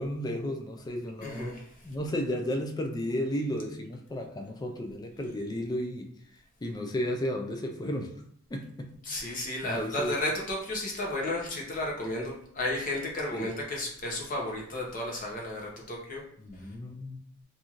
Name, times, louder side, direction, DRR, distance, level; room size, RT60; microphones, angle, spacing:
voice 1, 0.0-1.5 1.8-6.1 6.6-8.1 8.5-8.9 9.2-9.4 9.6-10.2 13.3-13.5 16.4-17.2, equal, 20° left, 3 dB, 0.3 m, -33 dB
voice 2, 1.2-1.7 9.0-16.2, left 1 dB, 40° left, -2 dB, 0.7 m, -33 dB
2.9 x 2.6 x 2.4 m, 0.67 s
head